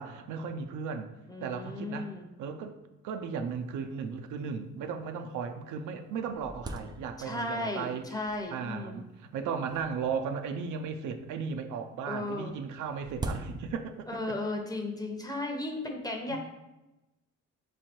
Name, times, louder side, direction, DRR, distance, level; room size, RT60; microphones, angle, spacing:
voice 1, 0.0-1.1 1.4-2.1 2.4-2.7 3.0-8.1 8.5-14.1 16.3-16.4, right 6 dB, 75° right, 7 dB, 0.5 m, -36 dB
voice 2, 1.3-2.3 7.2-9.0 12.1-12.5 14.1-16.4, left 2 dB, 10° left, 2 dB, 0.7 m, -35 dB
sound 1, 3.5-3.6 3.8-3.9 4.6-4.7 5.3-5.4 5.8-7.5 8.3-8.7 9.6-11.0 12.2-14.1, right 2 dB, 15° right, 0.3 m, -42 dB
3.5 x 3.2 x 4.3 m, 0.99 s
cardioid pair, 90°, 30 cm